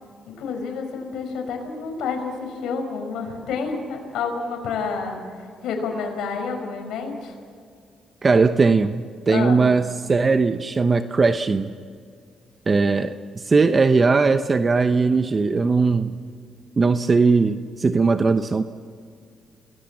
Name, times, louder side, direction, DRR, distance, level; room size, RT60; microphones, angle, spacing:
voice 1, 0.3-5.2 5.6-7.3 9.3-9.6, left 5 dB, 80° left, 4 dB, 5.5 m, -29 dB
voice 2, 8.2-11.7 12.7-16.2 16.8-18.6, right 4 dB, 35° right, 9 dB, 0.9 m, -19 dB
29.0 x 20.0 x 7.4 m, 2.2 s
cardioid pair, 90°, 0 cm